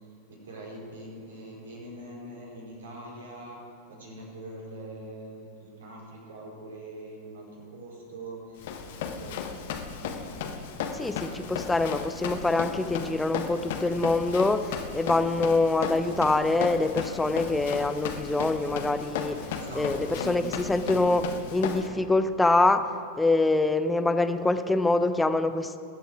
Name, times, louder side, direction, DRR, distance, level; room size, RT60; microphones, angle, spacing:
voice 1, 0.3-3.6 3.9-8.7 8.9-9.4 19.5-21.2, right 1 dB, 65° right, -2 dB, 4.2 m, -42 dB
Run, 8.6-21.9, left 6 dB, 55° left, 1.2 m, -35 dB
voice 2, 10.9-19.4 19.7-21.2 21.5-22.9 23.2-25.8, left 2 dB, 10° left, 10 dB, 0.6 m, -25 dB
21.0 x 8.0 x 4.8 m, 2.3 s
figure-of-eight pair, 90°, 0 cm